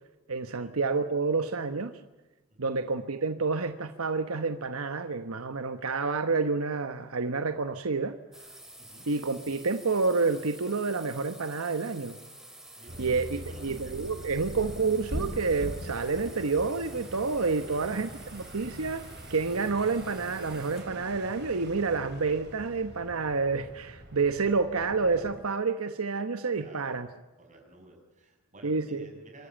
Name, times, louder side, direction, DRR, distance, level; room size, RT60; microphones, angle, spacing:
voice 1, 0.3-1.9 2.6-8.2 9.1-12.2 13.0-19.0 19.3-27.1 28.6-29.1, right 4 dB, 80° right, 9 dB, 1.1 m, -29 dB
sound 1, 8.3-21.0, right 1 dB, ahead, 2.8 m, -50 dB
sound 2, 12.9-25.4, right 1 dB, 50° right, 3.6 m, -42 dB
voice 2, 13.3-13.6 14.2-14.4 17.6-17.9 26.5-27.0 27.4-29.5, right 1 dB, 35° right, 2 dB, 6.6 m, -51 dB
26.0 x 14.0 x 9.0 m, 1.1 s
head